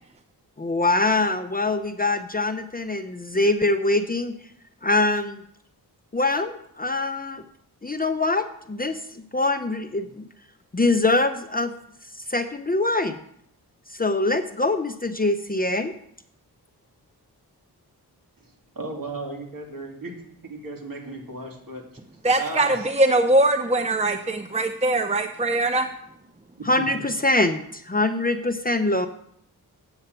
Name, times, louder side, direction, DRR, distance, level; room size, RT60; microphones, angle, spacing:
voice 1, 0.6-4.4 4.8-5.4 6.1-7.4 7.8-10.2 10.7-11.7 12.3-13.2 13.9-15.9 26.6-29.1, left 2 dB, 20° left, 8 dB, 0.7 m, -23 dB
voice 2, 18.7-20.2 20.4-21.8 22.3-22.9 24.0-24.1 26.6-26.9, right 2 dB, 55° right, 0 dB, 2.9 m, -35 dB
voice 3, 22.2-25.9, right 2 dB, 15° right, 7 dB, 0.7 m, -21 dB
8.7 x 7.1 x 6.8 m, 0.70 s
cardioid pair, 50°, 40 cm